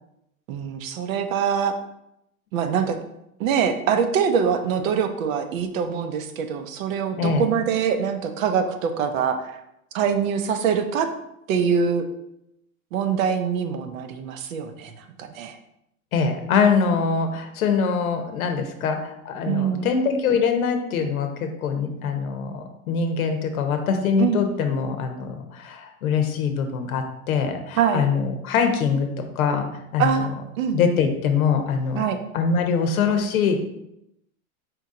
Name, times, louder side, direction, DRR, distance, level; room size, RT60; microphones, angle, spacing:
voice 1, 0.5-1.8 2.5-3.0 3.4-9.6 9.9-11.1 11.5-12.0 12.9-15.6 19.5-19.9 24.2-24.4 27.8-28.0 30.0-30.3 30.6-30.8 32.0-32.2, right 7 dB, 70° right, 7 dB, 0.7 m, -24 dB
voice 2, 16.1-30.2 30.7-33.6, left 5 dB, 85° left, 6 dB, 0.8 m, -23 dB
4.5 x 2.7 x 3.7 m, 0.81 s
supercardioid pair, 135°, 42 cm